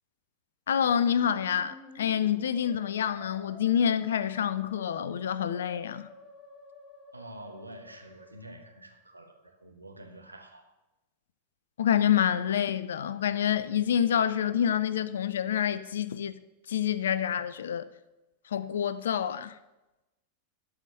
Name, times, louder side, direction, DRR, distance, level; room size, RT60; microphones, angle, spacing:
voice 1, 0.7-6.1 11.8-16.3 16.7-17.9 18.5-19.6, left 9 dB, 65° left, 0.5 m, -27 dB
Musical instrument, 0.8-8.9, left 2 dB, 10° right, 2.6 m, -52 dB
voice 2, 7.1-10.7, right 1 dB, 85° right, 1.2 m, -47 dB
11.5 x 5.0 x 7.6 m
figure-of-eight pair, 90°, 0 cm